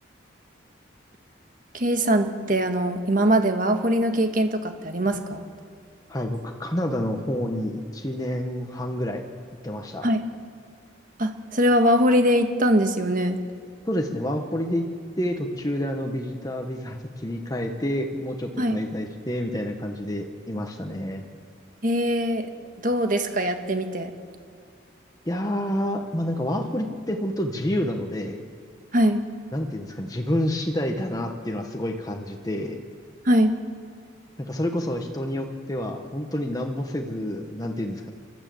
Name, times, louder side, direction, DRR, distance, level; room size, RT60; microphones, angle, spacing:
voice 1, 1.7-5.4 10.0-10.2 11.2-13.4 18.6-18.8 21.8-22.5 22.8-24.1 28.9-29.2 33.2-33.5, equal, 45° right, 6 dB, 1.6 m, -22 dB
voice 2, 6.1-9.2 9.6-10.1 13.8-14.9 15.2-21.2 25.3-28.4 29.5-32.8 34.4-38.1, left 1 dB, 20° left, 3 dB, 1.2 m, -28 dB
28.5 x 12.5 x 7.8 m, 2.2 s
head